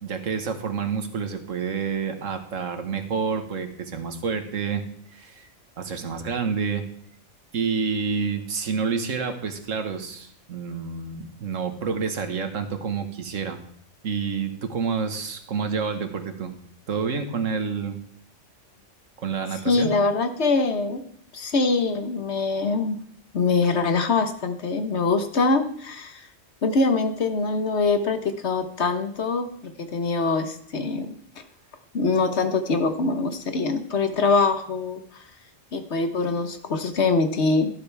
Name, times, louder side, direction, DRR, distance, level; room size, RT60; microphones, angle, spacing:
voice 1, 0.0-4.8 5.1-5.5 5.8-6.8 7.5-13.6 14.0-16.5 16.9-18.0 19.2-19.9, right 5 dB, 90° right, 7 dB, 1.7 m, -28 dB
voice 2, 19.6-21.0 21.3-23.0 23.3-26.3 26.6-29.4 29.8-31.2 31.9-35.0 35.7-37.7, left 3 dB, 60° left, 8 dB, 1.4 m, -23 dB
12.5 x 12.0 x 3.4 m, 0.63 s
omnidirectional pair, 1.3 m